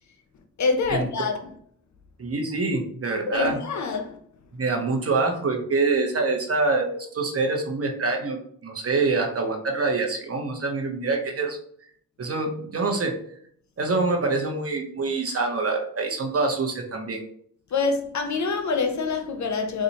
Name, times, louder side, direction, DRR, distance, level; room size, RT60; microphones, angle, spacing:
voice 1, 0.6-1.3 3.3-4.2 17.7-19.8, left 4 dB, 45° left, 0.6 m, -25 dB
voice 2, 2.2-3.6 4.5-11.6 12.2-13.2 13.8-17.2, right 3 dB, 35° right, 0.9 m, -25 dB
4.1 x 2.5 x 2.9 m
supercardioid pair, 55°, 39 cm